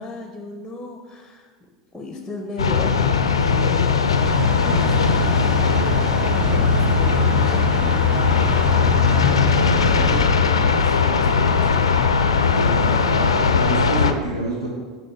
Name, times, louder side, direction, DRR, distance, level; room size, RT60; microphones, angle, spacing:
voice 1, 0.0-4.4 4.6-10.3 10.7-12.2, left 2 dB, 10° left, 3 dB, 0.6 m, -36 dB
sound 1, 2.6-14.1, left 5 dB, 80° left, 0.4 m, -19 dB
sound 2, 4.2-10.9, right 5 dB, 25° right, 0.4 m, -28 dB
voice 2, 12.4-14.7, right 2 dB, 85° right, -4 dB, 0.9 m, -28 dB
7.0 x 5.0 x 3.4 m, 1.5 s
figure-of-eight pair, 80°, 3 cm